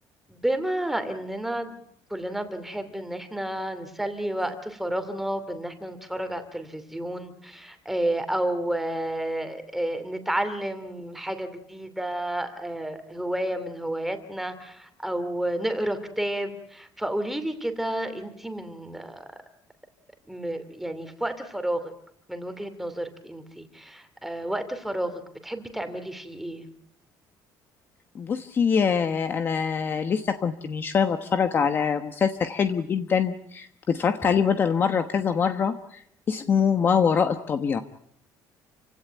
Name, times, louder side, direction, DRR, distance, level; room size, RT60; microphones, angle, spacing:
voice 1, 0.3-1.8 2.1-19.2 20.3-21.9 22.3-26.6, right 1 dB, 5° right, 9 dB, 2.7 m, -31 dB
voice 2, 28.1-36.0 36.3-37.8, left 6 dB, 30° left, 8 dB, 1.1 m, -24 dB
29.0 x 17.0 x 9.0 m, 0.70 s
cardioid pair, 170°, 7 cm